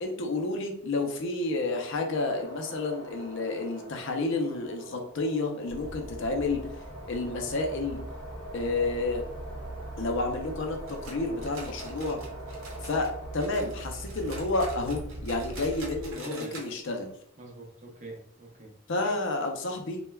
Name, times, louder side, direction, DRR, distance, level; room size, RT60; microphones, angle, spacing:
voice 1, 0.0-6.7 7.1-8.0 8.5-9.2 10.0-12.2 12.8-13.1 13.3-17.1 18.9-20.0, left 2 dB, 60° left, 3 dB, 0.5 m, -30 dB
sound 1, 1.6-14.0, right 1 dB, 10° left, 1.0 m, -45 dB
sound 2, 5.7-16.1, right 1 dB, 15° right, 1.0 m, -42 dB
sound 3, 10.9-13.1 13.4-16.7 17.0-17.1 17.5-17.6 18.2-18.3, right 3 dB, 75° right, 0.7 m, -46 dB
voice 2, 16.1-16.6 17.4-18.7 19.0-19.2, right 2 dB, 35° right, 0 dB, 0.6 m, -43 dB
3.2 x 2.2 x 2.2 m, 0.68 s
head